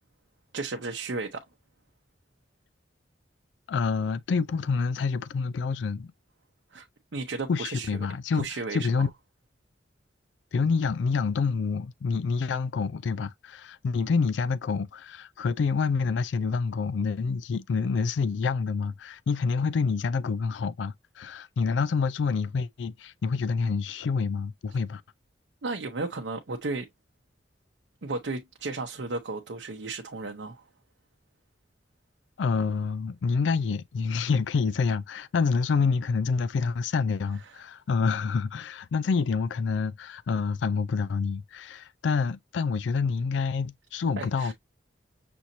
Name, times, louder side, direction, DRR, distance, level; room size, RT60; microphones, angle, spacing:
voice 1, 0.5-1.4 6.7-6.9 7.1-7.9 8.3-9.0 25.6-26.9 28.0-30.6 44.2-44.5, right 3 dB, 75° right, 0.7 m, -34 dB
voice 2, 3.7-6.1 7.5-9.1 10.5-25.0 32.4-44.5, left 5 dB, 75° left, 0.4 m, -27 dB
6.1 x 2.8 x 2.7 m
head